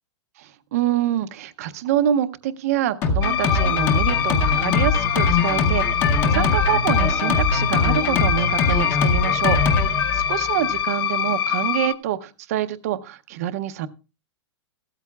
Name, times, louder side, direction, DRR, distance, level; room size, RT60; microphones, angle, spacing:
voice 1, 0.4-13.9, right 11 dB, 30° right, 13 dB, 0.6 m, -26 dB
Drum kit, 3.0-10.8, left 4 dB, 15° left, 0.7 m, -22 dB
sound 1, 3.2-11.9, left 10 dB, 55° left, 0.5 m, -24 dB
15.0 x 13.0 x 2.3 m, 0.31 s
supercardioid pair, 180°, 15 cm